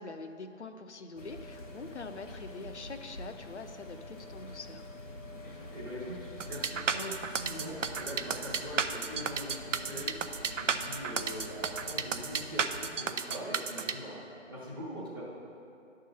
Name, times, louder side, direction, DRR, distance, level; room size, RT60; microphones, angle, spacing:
voice 1, 0.0-4.9, left 3 dB, 65° left, 8 dB, 0.7 m, -44 dB
sound 1, 1.2-12.9, left 1 dB, 90° left, 1.5 m, -46 dB
voice 2, 5.4-6.2 6.4-10.1 10.5-14.2 14.5-15.3, equal, 20° right, -10 dB, 0.9 m, -42 dB
sound 2, 6.4-13.9, right 6 dB, 75° right, 0.6 m, -32 dB
11.0 x 3.8 x 6.4 m, 2.7 s
figure-of-eight pair, 160°, 38 cm